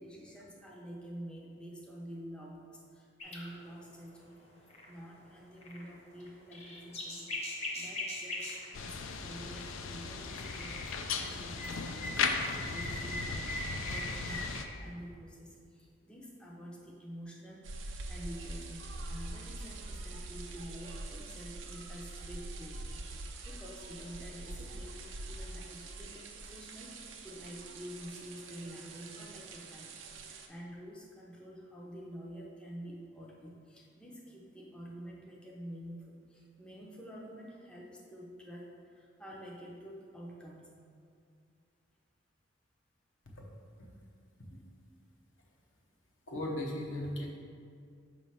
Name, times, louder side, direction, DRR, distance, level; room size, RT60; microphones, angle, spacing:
voice 1, 0.0-2.6 2.9-4.4 4.9-10.8 11.2-12.4 12.7-17.7 18.1-25.0 25.3-27.0 27.2-40.7, equal, 5° left, -4 dB, 0.5 m, -48 dB
sound 1, 3.2-3.7 4.1-4.2 4.7-4.9 5.6-5.9 6.2-8.7 10.3-10.9 11.2-14.6, left 1 dB, 30° left, 0.8 m, -40 dB
sound 2, 8.7-14.6, left 5 dB, 90° left, 0.4 m, -37 dB
sound 3, 17.6-30.5, right 2 dB, 65° right, 0.5 m, -44 dB
voice 2, 46.3-47.3, left 1 dB, 70° left, -1 dB, 0.9 m, -37 dB
5.5 x 3.1 x 5.6 m, 2.3 s
head